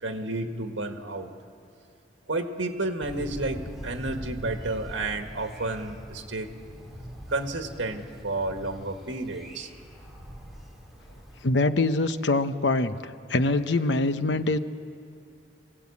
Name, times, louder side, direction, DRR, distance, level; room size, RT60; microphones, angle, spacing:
voice 1, 0.0-1.3 2.3-6.5 7.3-9.7, right 2 dB, 85° right, 5 dB, 1.7 m, -31 dB
Thunder, 3.0-11.4, equal, ahead, 3.8 m, -42 dB
voice 2, 11.4-13.0 13.3-14.6, left 2 dB, 70° left, 10 dB, 0.9 m, -24 dB
27.0 x 17.0 x 8.5 m, 2.6 s
head